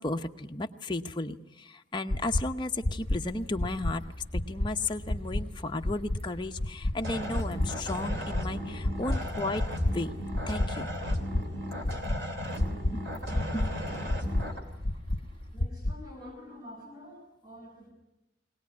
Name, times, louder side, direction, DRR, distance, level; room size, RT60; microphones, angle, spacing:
voice 1, 0.0-4.0 4.3-9.6 9.9-10.2 10.5-10.9 12.9-13.7, left 2 dB, 25° left, 5 dB, 0.8 m, -34 dB
sound 1, 2.1-2.4 2.8-3.2 3.6-3.9 4.3-4.7 5.1-5.4 5.8-6.2 6.6-6.9 7.3-7.7 8.1-8.4 8.8-9.2 9.6-9.9 10.3-10.7 11.1-11.4 11.8-12.2 12.6-12.9 13.3-13.7 14.1-14.4 14.8-15.2 15.6-15.9, left 1 dB, 50° left, 1.1 m, -28 dB
sound 2, 3.0-15.6, left 1 dB, 55° right, 2.8 m, -47 dB
sound 3, 7.0-14.6, equal, 75° right, 3.0 m, -36 dB
voice 2, 11.6-12.0 15.5-17.9, left 1 dB, 20° right, 1 dB, 6.7 m, -48 dB
22.5 x 18.0 x 9.5 m, 0.94 s
head